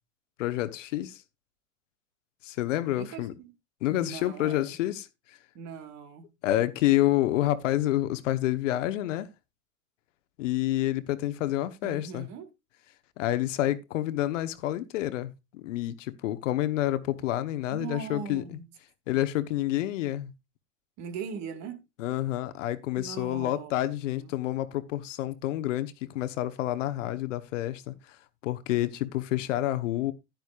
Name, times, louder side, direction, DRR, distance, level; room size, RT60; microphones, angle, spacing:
voice 1, 0.4-1.2 2.4-3.3 3.8-5.1 6.4-9.3 10.4-12.3 13.2-18.4 19.1-20.3 22.0-27.9 28.4-30.1, left 14 dB, 65° left, 1.1 m, -28 dB
voice 2, 3.0-3.5 3.9-4.8 5.5-6.3 11.8-12.5 17.7-18.7 19.1-19.2 21.0-21.8 23.0-23.8 24.2-24.3, right 6 dB, 45° right, 2.0 m, -40 dB
10.5 x 10.5 x 2.4 m
hypercardioid pair, 95°, 39 cm